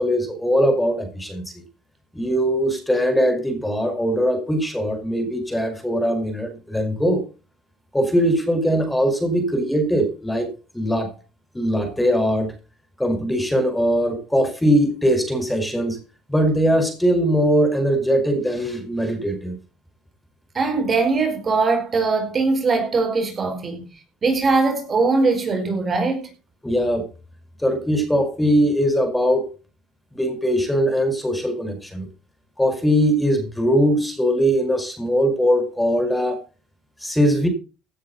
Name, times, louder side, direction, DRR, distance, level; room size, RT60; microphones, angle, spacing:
voice 1, 0.0-1.6 2.1-7.2 7.9-10.5 10.7-11.1 11.5-12.5 13.0-16.0 16.3-19.6 26.6-27.1 27.6-29.5 30.1-32.1 32.6-36.4 37.0-37.5, equal, 5° left, 5.2 m, -21 dB
voice 2, 20.5-23.8 24.2-26.3, right 3 dB, 35° right, 4.7 m, -21 dB
17.0 x 9.4 x 4.2 m
supercardioid pair, 95°, 0 cm